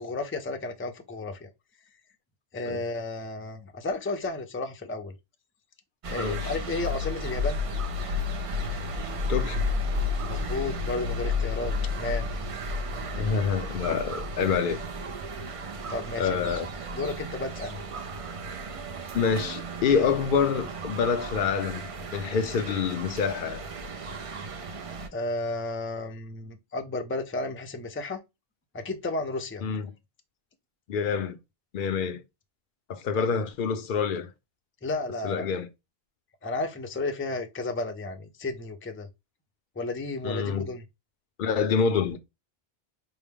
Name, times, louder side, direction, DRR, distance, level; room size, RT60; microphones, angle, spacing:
voice 1, 0.0-1.5 2.5-5.1 6.1-7.6 10.3-12.3 15.9-16.5 17.0-17.8 25.1-28.2 28.7-29.6 33.2-33.3 34.8-35.5 36.4-39.1 39.8-40.8, left 2 dB, 20° left, 0.4 m, -33 dB
sound 1, 6.0-25.1, left 2 dB, 45° right, 0.4 m, -33 dB
voice 2, 6.2-6.5 9.3-9.6 13.2-14.8 16.2-16.7 19.1-23.6 29.6-29.9 30.9-31.4 31.7-32.2 32.9-34.3 35.2-35.7 40.2-40.7 41.4-42.2, left 6 dB, 60° left, 0.7 m, -27 dB
4.5 x 2.1 x 3.4 m
omnidirectional pair, 1.0 m